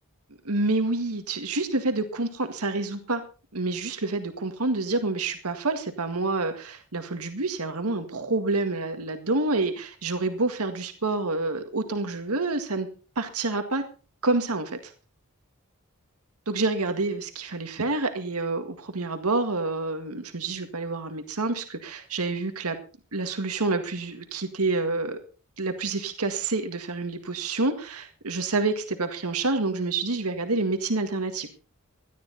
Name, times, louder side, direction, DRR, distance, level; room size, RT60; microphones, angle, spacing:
voice 1, 0.4-3.2 3.5-12.9 13.2-13.8 14.2-14.9 16.5-22.8 23.1-25.2 25.6-31.5, right 3 dB, 85° right, 7 dB, 1.9 m, -28 dB
18.0 x 12.5 x 4.1 m, 0.36 s
head